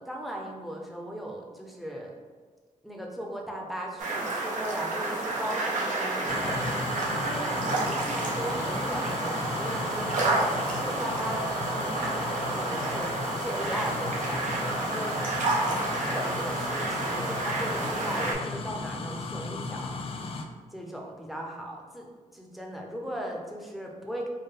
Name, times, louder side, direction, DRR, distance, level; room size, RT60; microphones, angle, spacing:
voice 1, 0.0-2.1 2.8-6.7 7.2-10.5 10.8-13.1 13.4-15.2 15.9-20.0 20.7-22.1 22.3-24.3, equal, ahead, 0 dB, 0.6 m, -37 dB
sound 1, 4.0-18.3, right 2 dB, 70° right, 0.8 m, -30 dB
sound 2, 6.3-20.4, left 3 dB, 45° left, 0.3 m, -36 dB
4.5 x 2.1 x 3.2 m, 1.5 s
cardioid pair, 105°, 14 cm